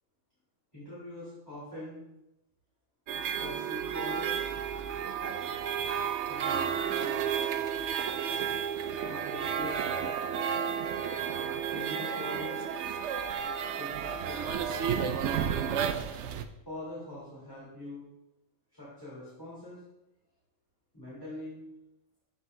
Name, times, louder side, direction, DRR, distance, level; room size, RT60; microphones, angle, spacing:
voice 1, 0.7-2.0 3.4-4.4 6.3-7.2 9.0-10.0 11.7-12.6 13.8-14.9 16.7-18.0 18.7-19.8 20.9-21.6, left 1 dB, 15° left, -10 dB, 3.4 m, -43 dB
sound 1, 3.1-16.4, right 8 dB, 65° right, 0.8 m, -32 dB
14.0 x 5.6 x 2.7 m, 0.91 s
omnidirectional pair, 1.4 m